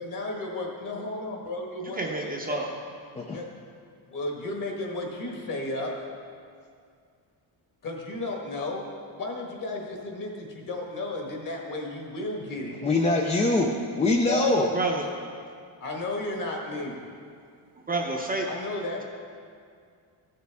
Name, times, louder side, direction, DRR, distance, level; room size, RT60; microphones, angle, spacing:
voice 1, 0.0-2.6 3.3-3.5 4.1-5.9 7.8-8.9 9.2-12.8 15.8-17.0 18.5-19.0, left 2 dB, 45° left, 0 dB, 1.6 m, -33 dB
voice 2, 2.0-2.7 14.7-15.1 17.9-18.5, right 2 dB, 20° right, 0 dB, 0.7 m, -28 dB
voice 3, 12.8-14.8, left 2 dB, 15° left, 0 dB, 0.4 m, -23 dB
13.5 x 6.7 x 3.5 m, 2.2 s
cardioid pair, 155°, 44 cm